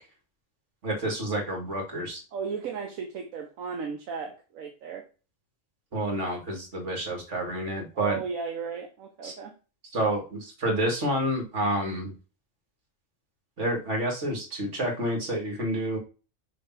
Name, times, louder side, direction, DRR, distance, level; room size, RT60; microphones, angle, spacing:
voice 1, 0.8-2.2 5.9-8.2 9.2-9.3 9.9-12.1 13.6-16.0, right 1 dB, 60° right, 2 dB, 2.4 m, -29 dB
voice 2, 2.3-5.0 7.9-9.5, right 6 dB, 80° right, 4 dB, 1.3 m, -35 dB
6.7 x 3.5 x 5.7 m, 0.34 s
omnidirectional pair, 1.4 m